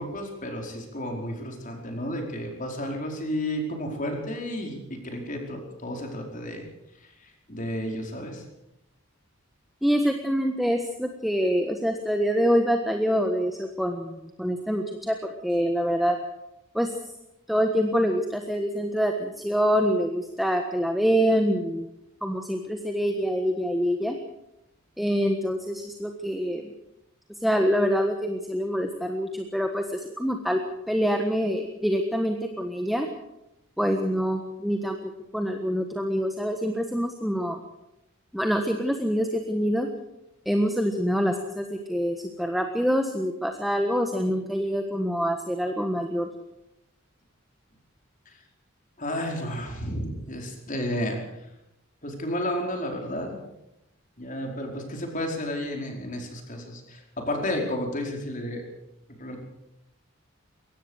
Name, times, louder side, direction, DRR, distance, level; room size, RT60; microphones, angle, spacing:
voice 1, 0.0-6.6 7.5-8.4 49.0-51.2 52.0-53.4 54.2-58.6 59.2-59.4, left 1 dB, 40° left, 2 dB, 4.9 m, -32 dB
voice 2, 9.8-16.2 16.7-16.9 17.5-21.9 22.2-24.2 25.0-26.7 27.4-30.6 30.9-33.1 33.8-37.6 38.3-39.9 40.4-46.3, equal, ahead, 4 dB, 1.4 m, -25 dB
23.0 x 18.0 x 6.6 m, 0.87 s
head